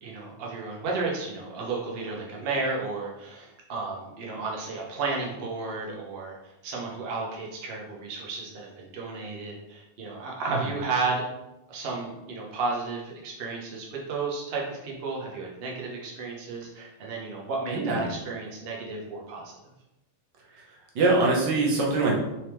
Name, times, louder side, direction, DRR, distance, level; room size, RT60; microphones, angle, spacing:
voice 1, 0.0-11.2 11.7-19.6, right 3 dB, 85° right, -2 dB, 0.5 m, -33 dB
voice 2, 17.7-18.0 20.5-20.6 20.9-22.2, right 3 dB, 60° right, -3 dB, 1.5 m, -23 dB
4.3 x 3.5 x 3.0 m, 0.95 s
omnidirectional pair, 2.4 m